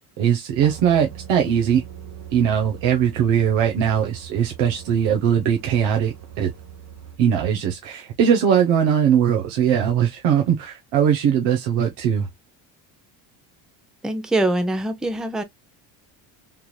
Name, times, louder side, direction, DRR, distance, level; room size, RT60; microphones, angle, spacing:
voice 1, 0.2-1.8 2.3-6.5 7.2-12.3, right 8 dB, 70° right, 1.0 m, -20 dB
sound 1, 0.5-7.2, right 9 dB, 35° right, 1.0 m, -40 dB
voice 2, 14.0-15.4, right 1 dB, ahead, 0.6 m, -23 dB
3.6 x 3.0 x 2.2 m
supercardioid pair, 90°, 46 cm